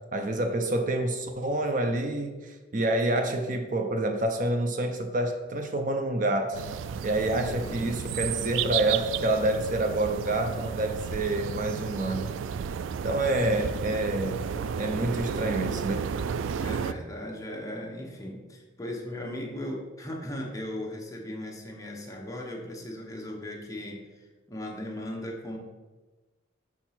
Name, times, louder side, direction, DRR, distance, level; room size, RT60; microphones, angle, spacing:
voice 1, 0.1-6.6 7.0-12.3 13.0-14.4 14.8-16.1, right 1 dB, 45° right, 5 dB, 0.6 m, -28 dB
sound 1, 6.5-16.9, right 7 dB, 85° right, 0.3 m, -32 dB
voice 2, 7.4-8.0 13.5-13.8 16.6-24.1 24.5-25.6, left 1 dB, 15° left, -1 dB, 1.0 m, -37 dB
5.9 x 4.5 x 5.7 m, 1.2 s
head